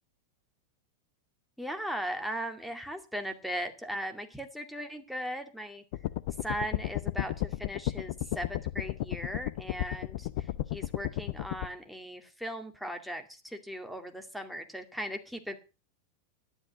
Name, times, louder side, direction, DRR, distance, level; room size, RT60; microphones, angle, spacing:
voice 1, 1.6-5.8 6.4-15.6, equal, ahead, 5 dB, 2.3 m, -38 dB
sound 1, 5.9-11.7, left 15 dB, 50° left, 0.7 m, -33 dB
12.5 x 11.0 x 6.0 m, 0.33 s
figure-of-eight pair, 90°, 0 cm